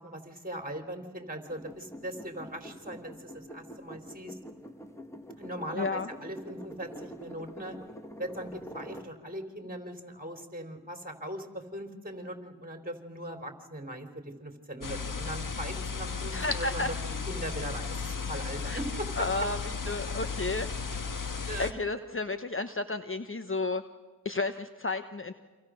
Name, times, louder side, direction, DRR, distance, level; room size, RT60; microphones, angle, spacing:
voice 1, 0.0-4.4 5.4-7.8 8.2-19.3 20.9-21.0 21.5-21.7, right 1 dB, 20° right, 6 dB, 4.1 m, -40 dB
sound 1, 1.5-9.1, equal, 5° left, 2.2 m, -46 dB
voice 2, 5.8-6.1 16.3-16.9 18.4-18.8 19.2-19.6 19.9-20.7 21.6-23.8 24.2-25.3, left 3 dB, 30° left, 9 dB, 1.1 m, -32 dB
sound 2, 14.8-21.7, left 5 dB, 50° left, 1.7 m, -35 dB
28.0 x 26.5 x 6.5 m, 1.4 s
supercardioid pair, 40°, 42 cm